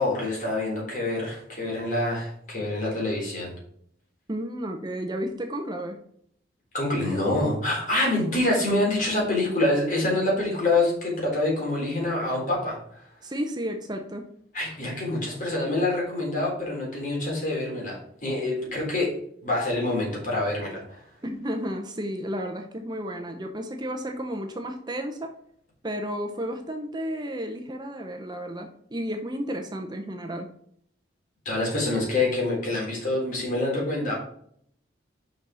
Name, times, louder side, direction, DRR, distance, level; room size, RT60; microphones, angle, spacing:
voice 1, 0.0-3.5 6.7-12.8 14.5-19.1 19.4-21.0 31.5-34.1, left 2 dB, 45° left, -3 dB, 3.7 m, -26 dB
voice 2, 4.3-6.0 13.2-14.3 21.2-25.3 25.8-30.5, equal, 25° right, 4 dB, 0.7 m, -32 dB
6.4 x 5.6 x 4.9 m, 0.66 s
head